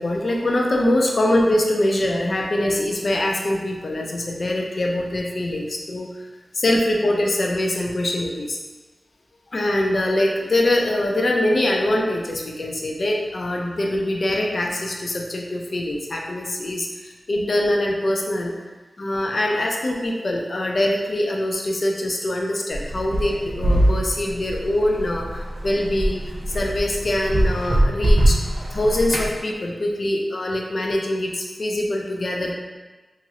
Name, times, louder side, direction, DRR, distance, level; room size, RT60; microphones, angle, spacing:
voice 1, 0.0-6.3 6.5-8.6 9.5-18.6 19.0-26.2 26.5-32.5, left 1 dB, 55° left, 0 dB, 0.4 m, -23 dB
sound 1, 22.7-29.3, right 1 dB, 45° right, 0.7 m, -22 dB
3.0 x 2.5 x 2.8 m, 1.3 s
wide cardioid pair, 110°, 0 cm